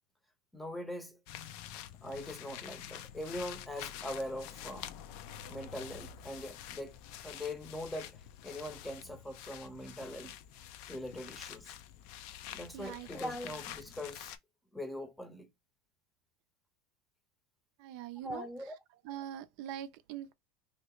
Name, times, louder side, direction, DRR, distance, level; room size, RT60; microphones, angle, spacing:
voice 1, 0.5-1.2 2.0-4.9 5.5-7.0 7.2-10.3 10.8-11.7 12.5-14.3 14.7-15.5 18.2-18.8, left 1 dB, 5° left, 0.7 m, -42 dB
sound 1, 1.3-14.4, left 10 dB, 65° left, 0.4 m, -47 dB
voice 2, 12.7-13.1 17.8-18.5 19.0-20.3, right 11 dB, 65° right, 0.4 m, -42 dB
3.1 x 2.8 x 3.0 m
supercardioid pair, 110°, 0 cm